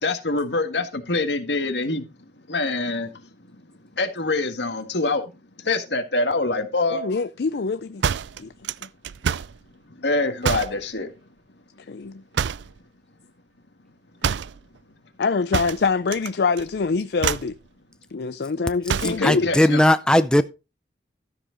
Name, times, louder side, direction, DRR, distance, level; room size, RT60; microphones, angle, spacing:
voice 1, 0.0-2.1 2.5-3.6 4.0-5.3 5.6-7.0 9.9-11.1 19.0-19.8, left 2 dB, 85° left, 1.8 m, -25 dB
voice 2, 6.9-8.0 8.4-8.5 11.9-12.2 14.2-14.4 15.2-17.6 18.1-19.5, left 4 dB, 65° left, 0.5 m, -25 dB
sound 1, 8.0-9.6 10.4-10.8 12.3-12.8 14.2-14.6 15.5-16.3 16.6-16.8 17.2-17.6 18.9-19.3, right 7 dB, 90° right, 0.4 m, -26 dB
voice 3, 19.2-20.4, left 1 dB, 5° left, 0.5 m, -17 dB
13.0 x 7.0 x 4.0 m
head